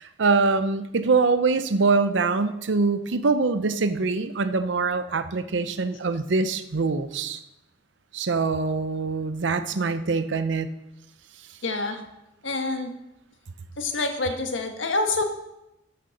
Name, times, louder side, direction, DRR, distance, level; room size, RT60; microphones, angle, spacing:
voice 1, 0.0-7.4 8.1-10.7, right 4 dB, 70° right, 11 dB, 0.6 m, -24 dB
voice 2, 11.6-12.0 12.4-12.9 13.8-15.2, left 3 dB, 85° left, 5 dB, 1.6 m, -27 dB
12.0 x 6.6 x 6.6 m, 0.89 s
head